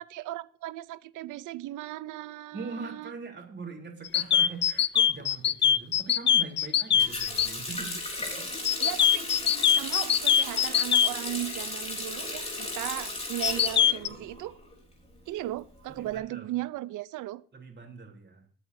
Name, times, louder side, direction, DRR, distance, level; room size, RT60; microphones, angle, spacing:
voice 1, 0.0-3.1 8.8-9.3 9.7-14.5 15.3-17.4, right 15 dB, 85° right, 0.6 m, -37 dB
voice 2, 2.5-8.5 15.9-16.5 17.5-18.5, right 4 dB, 35° right, 3.5 m, -42 dB
sound 1, 4.1-7.5 8.7-11.1 13.4-14.1, left 9 dB, 40° left, 0.4 m, -22 dB
Water tap faucet, 7.0-14.7 15.0-16.1, left 2 dB, 20° left, 3.6 m, -36 dB
19.0 x 8.3 x 2.7 m
cardioid pair, 90°, 30 cm